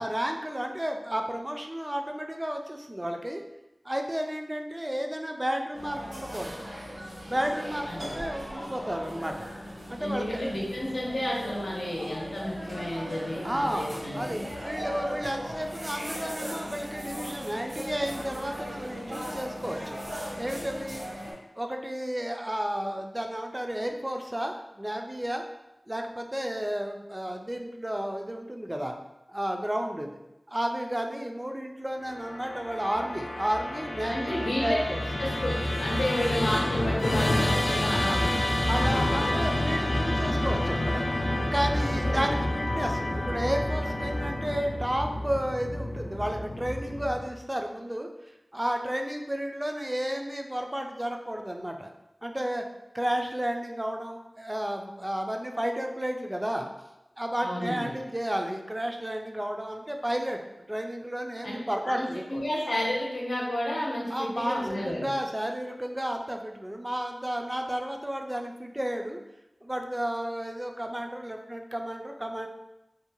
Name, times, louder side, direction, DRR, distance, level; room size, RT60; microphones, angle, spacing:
voice 1, 0.0-3.4 3.8-6.7 7.3-9.5 9.9-10.5 13.4-20.0 20.4-21.0 21.6-25.4 25.9-28.9 29.3-30.1 30.5-35.0 38.7-41.0 41.5-48.1 48.5-51.9 52.2-52.6 52.9-56.7 57.2-60.4 60.7-62.4 64.1-69.2 69.6-72.5, equal, 15° right, 3 dB, 0.3 m, -32 dB
sound 1, 5.7-21.3, equal, 85° right, 1.0 m, -38 dB
voice 2, 10.0-14.4 34.1-34.8 35.2-38.4 41.8-42.4 57.4-58.0 61.4-61.5 61.8-65.1, left 1 dB, 90° left, -5 dB, 0.7 m, -31 dB
Musical instrument, 32.1-47.4, left 1 dB, 65° left, 0.3 m, -29 dB
2.6 x 2.2 x 2.8 m, 0.95 s
wide cardioid pair, 60°, 0 cm